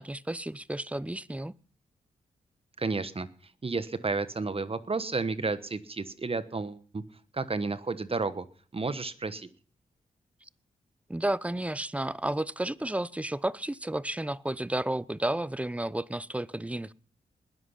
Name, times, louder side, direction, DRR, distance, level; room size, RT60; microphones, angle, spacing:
voice 1, 0.0-1.5 11.1-16.9, right 1 dB, 10° right, 0.7 m, -32 dB
voice 2, 2.8-3.3 3.6-7.0 7.3-8.4 8.7-9.5, right 3 dB, 35° right, 1.1 m, -31 dB
20.5 x 8.1 x 5.8 m
supercardioid pair, 45°, 16 cm